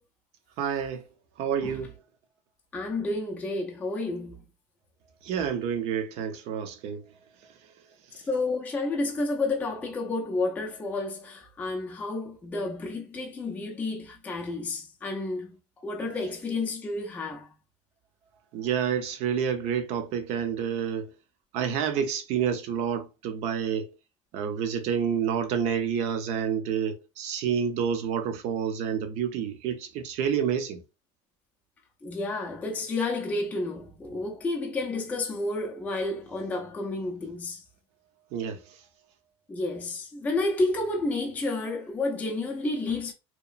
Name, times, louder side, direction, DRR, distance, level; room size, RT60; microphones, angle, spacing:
voice 1, 0.6-1.0 1.4-1.9 5.2-7.0 18.5-21.1 21.5-23.9 24.3-30.8 38.3-38.6, right 8 dB, 45° right, 0.6 m, -29 dB
voice 2, 2.7-4.4 8.1-15.5 15.8-17.5 32.0-37.6 39.5-43.1, left 2 dB, 10° left, 0.4 m, -30 dB
2.9 x 2.3 x 2.4 m
supercardioid pair, 145°, 16 cm